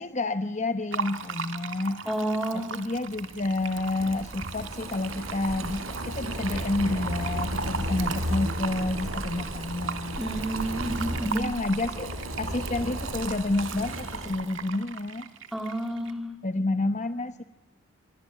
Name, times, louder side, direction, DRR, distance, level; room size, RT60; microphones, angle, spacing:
voice 1, 0.0-2.0 2.5-10.2 11.2-15.3 16.4-17.4, left 2 dB, 35° left, 9 dB, 1.0 m, -29 dB
Fill (with liquid), 0.9-16.1, right 5 dB, 60° right, 2.3 m, -38 dB
voice 2, 2.0-2.7 10.2-11.5 15.5-16.3, right 1 dB, ahead, 4 dB, 3.4 m, -30 dB
Boiling, 3.2-14.5, equal, 90° right, 4.9 m, -34 dB
27.5 x 23.5 x 8.6 m, 0.99 s
head